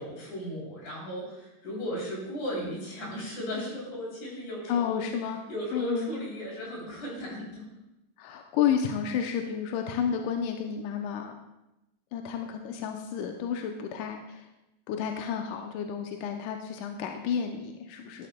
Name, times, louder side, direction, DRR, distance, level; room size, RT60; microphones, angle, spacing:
voice 1, 0.0-5.0 5.5-7.6, equal, 60° left, -4 dB, 4.4 m, -36 dB
voice 2, 4.7-5.4 5.7-6.1 8.2-11.3 12.1-14.5 14.9-18.3, left 8 dB, 80° left, 3 dB, 1.9 m, -31 dB
12.0 x 11.5 x 2.2 m, 0.93 s
omnidirectional pair, 4.1 m